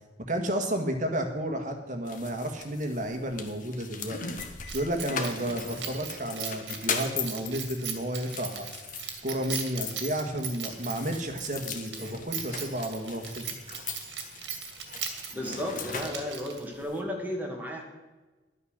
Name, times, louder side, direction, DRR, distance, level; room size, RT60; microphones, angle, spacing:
voice 1, 0.3-4.2 4.7-8.7 9.2-13.4, right 1 dB, 45° right, 4 dB, 1.7 m, -32 dB
sound 1, 2.1-17.0, left 5 dB, 45° left, 1.4 m, -39 dB
Keys jangling, 4.7-16.8, right 7 dB, 70° right, 2.0 m, -39 dB
voice 2, 15.3-17.8, left 1 dB, 10° right, 0 dB, 2.1 m, -34 dB
11.5 x 9.6 x 6.6 m, 1.2 s
head